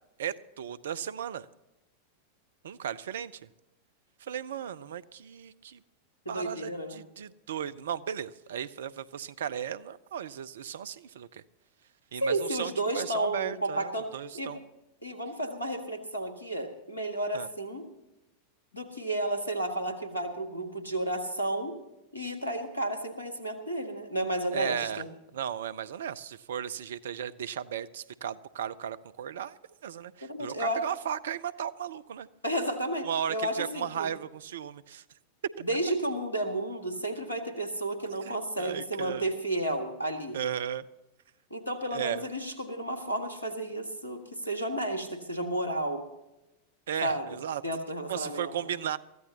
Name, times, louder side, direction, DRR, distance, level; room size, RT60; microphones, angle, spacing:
voice 1, 0.2-1.5 2.6-3.3 4.2-5.8 6.3-11.4 12.1-14.6 17.3-17.5 24.5-25.0 25.3-32.3 33.0-35.0 38.2-39.3 40.3-40.9 41.9-42.3 46.9-47.6 48.1-49.0, right 9 dB, 60° right, 16 dB, 0.5 m, -35 dB
voice 2, 6.2-7.0 12.2-14.6 15.0-17.9 18.7-21.7 22.1-25.1 30.2-30.8 32.4-34.1 35.6-40.4 41.5-46.0 47.0-47.4 47.6-48.5, right 1 dB, 85° left, 5 dB, 1.8 m, -32 dB
23.0 x 14.5 x 2.9 m, 0.97 s
figure-of-eight pair, 90°, 0 cm